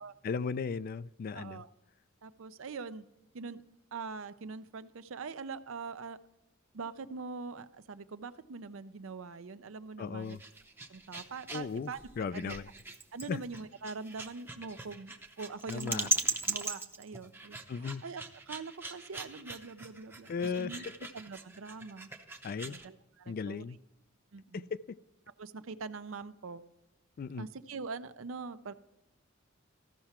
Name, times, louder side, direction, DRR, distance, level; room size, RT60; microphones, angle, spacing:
voice 1, 0.2-1.6 10.0-10.4 11.5-12.7 13.3-13.4 15.7-16.1 17.7-18.0 20.3-20.8 22.4-22.8 23.3-23.8 24.5-25.0 27.2-27.5, left 5 dB, 45° left, 17 dB, 0.3 m, -36 dB
voice 2, 1.3-1.7 2.2-3.0 3.3-3.6 3.9-6.2 6.7-10.4 10.9-12.0 12.3-12.6 13.1-16.1 16.5-20.8 21.1-22.1 22.6-23.6 24.3-24.7 25.4-26.6 27.4-28.7, right 4 dB, 80° right, 12 dB, 0.6 m, -43 dB
sound 1, 10.2-22.9, right 2 dB, 10° right, 0.7 m, -39 dB
14.5 x 5.8 x 4.3 m, 0.95 s
head